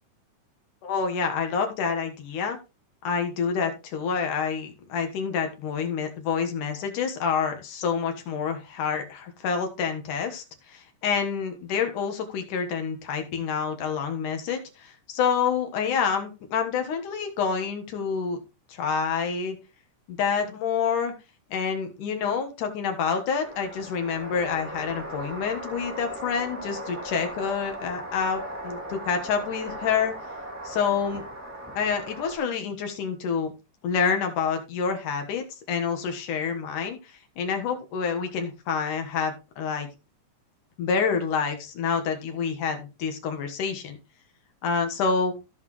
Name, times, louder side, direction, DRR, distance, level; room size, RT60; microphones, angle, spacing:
voice 1, 0.8-2.6 3.0-18.4 18.7-19.6 20.1-21.1 21.5-30.1 30.6-31.2 31.8-33.5 33.8-39.9 40.8-44.0 44.6-45.3, left 6 dB, 75° left, 4 dB, 2.9 m, -28 dB
sound 1, 23.4-32.4, right 1 dB, 5° right, 1.3 m, -38 dB
15.5 x 5.8 x 3.1 m, 0.28 s
omnidirectional pair, 3.7 m